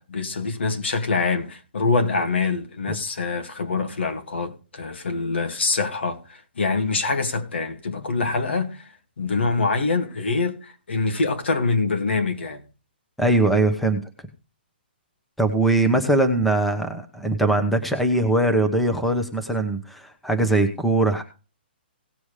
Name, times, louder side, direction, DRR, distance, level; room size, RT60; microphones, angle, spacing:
voice 1, 0.1-8.8 9.2-12.6, left 4 dB, 85° left, 2.3 m, -25 dB
voice 2, 13.2-14.0 15.4-21.2, right 2 dB, ahead, 1.0 m, -21 dB
18.0 x 7.1 x 3.3 m
hypercardioid pair, 165°, 6 cm